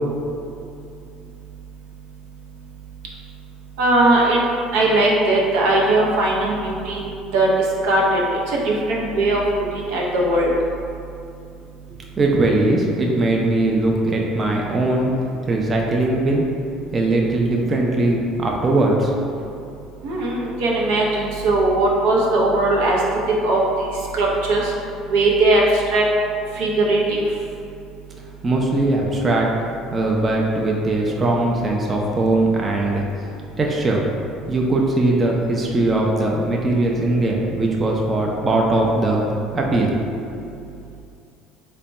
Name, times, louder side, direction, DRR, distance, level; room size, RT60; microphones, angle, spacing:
voice 1, 3.8-4.4 4.7-10.5 20.0-23.0 23.4-24.7 25.1-26.1 26.5-27.2, right 2 dB, 85° right, -3 dB, 0.7 m, -19 dB
voice 2, 12.2-15.1 15.5-16.5 16.9-19.3 28.4-29.5 29.9-33.0 33.6-34.0 34.5-39.9 40.2-40.3, right 2 dB, 25° right, -1 dB, 0.4 m, -20 dB
3.3 x 2.1 x 4.0 m, 2.6 s
cardioid pair, 120°, 0 cm